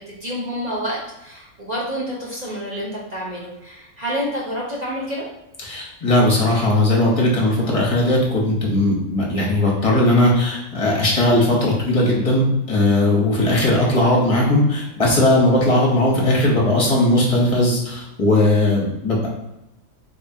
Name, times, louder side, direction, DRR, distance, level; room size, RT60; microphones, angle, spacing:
voice 1, 0.1-5.3, equal, 40° right, -5 dB, 0.7 m, -28 dB
voice 2, 5.6-19.3, left 1 dB, 25° left, -4 dB, 0.9 m, -18 dB
3.7 x 3.5 x 2.7 m, 0.89 s
omnidirectional pair, 1.6 m